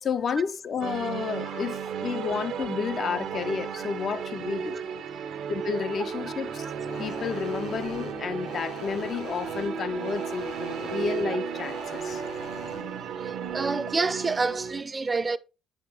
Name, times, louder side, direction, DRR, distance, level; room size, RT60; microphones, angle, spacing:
voice 1, 0.0-4.9 5.5-6.7 6.9-12.2 13.4-13.5, left 6 dB, 55° left, 0.6 m, -31 dB
sound 1, 0.8-14.8, right 7 dB, 80° right, 1.0 m, -34 dB
sound 2, 6.7-12.9, left 3 dB, 75° left, 3.4 m, -43 dB
voice 2, 13.2-15.4, right 4 dB, 25° right, 0.6 m, -28 dB
8.5 x 6.5 x 3.6 m
cardioid pair, 90°, 0 cm